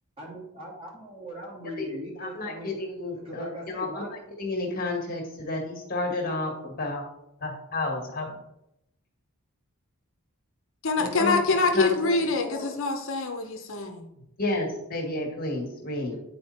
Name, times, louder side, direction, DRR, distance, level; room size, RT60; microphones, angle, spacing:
voice 1, 0.2-2.7 3.1-4.1 11.0-12.7 14.1-14.3 16.0-16.2, equal, 25° right, -3 dB, 2.4 m, -40 dB
voice 2, 2.2-7.0 7.4-8.4 11.0-12.2 14.4-16.1, left 2 dB, 40° left, 1 dB, 1.7 m, -31 dB
voice 3, 10.8-14.1, left 3 dB, 60° left, 4 dB, 0.8 m, -25 dB
9.4 x 4.3 x 4.3 m, 0.85 s
head